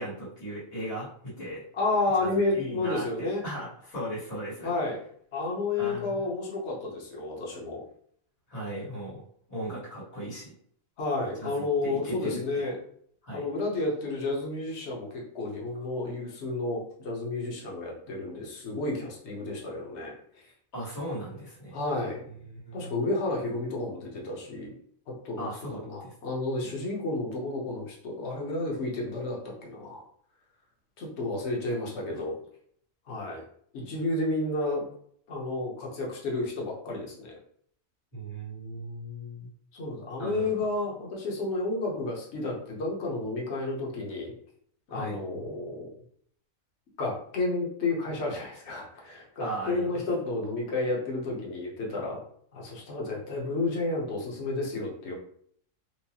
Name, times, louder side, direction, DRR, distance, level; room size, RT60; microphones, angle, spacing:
voice 1, 0.0-1.6 2.2-4.7 5.7-6.3 8.5-9.2 9.5-10.5 11.4-12.6 13.2-13.5 20.7-21.8 22.5-23.0 25.4-26.1 26.6-26.7 33.8-33.9 38.1-39.5 40.2-40.7 44.9-45.2 49.4-50.0, right 1 dB, 85° left, -8 dB, 2.1 m, -37 dB
voice 2, 1.8-3.4 4.6-5.0 5.3-7.8 11.0-12.7 13.3-20.5 21.7-22.3 22.7-24.7 25.1-30.0 31.0-32.4 33.1-33.4 33.7-34.8 35.3-37.3 39.7-44.3 44.9-45.9 47.0-52.2 52.5-55.1, left 2 dB, 55° left, -2 dB, 1.1 m, -31 dB
4.6 x 2.1 x 2.8 m, 0.63 s
omnidirectional pair, 1.4 m